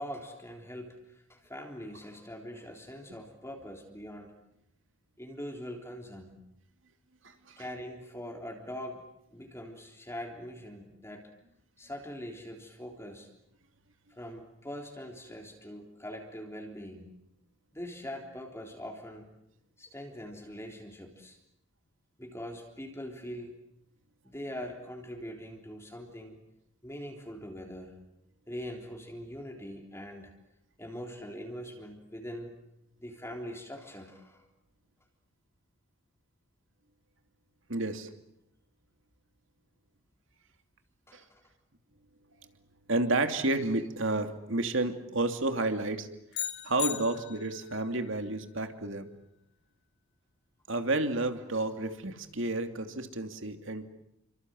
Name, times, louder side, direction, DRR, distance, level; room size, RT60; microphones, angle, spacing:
voice 1, 0.0-4.3 5.2-6.4 7.6-9.0 9.3-11.3 11.8-13.3 14.1-17.1 17.7-19.3 19.8-21.4 22.2-23.5 24.2-26.3 26.8-28.0 28.5-30.3 30.8-32.5 33.0-34.5 41.1-41.4, equal, 10° left, 1 dB, 3.6 m, -42 dB
voice 2, 7.2-7.6 37.7-38.1 41.1-41.2 42.9-46.1 46.6-49.1 50.7-53.9, right 2 dB, 65° right, 7 dB, 2.8 m, -31 dB
sound 1, 46.3-47.7, left 11 dB, 55° left, 1.7 m, -36 dB
29.5 x 25.5 x 7.9 m, 0.80 s
head